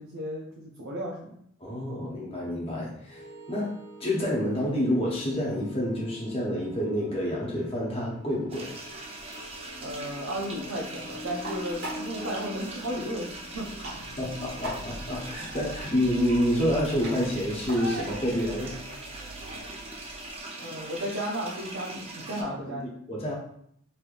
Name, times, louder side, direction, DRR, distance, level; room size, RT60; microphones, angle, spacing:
voice 1, 0.0-1.4 9.8-13.6 20.6-22.8, equal, 85° right, -3 dB, 0.6 m, -34 dB
voice 2, 1.6-3.2 3.5-3.7 4.0-8.7 14.2-18.7 22.4-23.3, equal, 30° left, -4 dB, 0.9 m, -28 dB
sound 1, 3.1-19.7, equal, 75° left, 1.1 m, -45 dB
sound 2, 8.5-22.4, right 2 dB, 30° right, 0.5 m, -41 dB
sound 3, 8.9-20.4, right 1 dB, 55° right, 1.2 m, -43 dB
3.2 x 2.9 x 2.4 m, 0.69 s
head